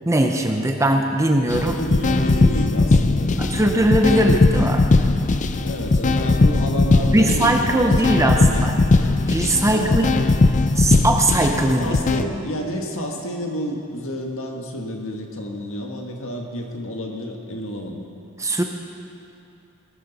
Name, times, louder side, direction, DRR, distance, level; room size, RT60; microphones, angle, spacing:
voice 1, 0.1-1.8 3.5-4.8 7.1-8.7 9.3-10.2 10.8-12.0 18.4-18.6, right 1 dB, 15° right, 3 dB, 0.7 m, -20 dB
sound 1, 1.5-12.2, left 3 dB, 35° left, 0.5 m, -19 dB
voice 2, 1.8-3.9 5.6-8.6 9.7-10.1 11.8-18.0, equal, 65° left, 1 dB, 1.7 m, -30 dB
19.0 x 13.0 x 4.1 m, 2.7 s
head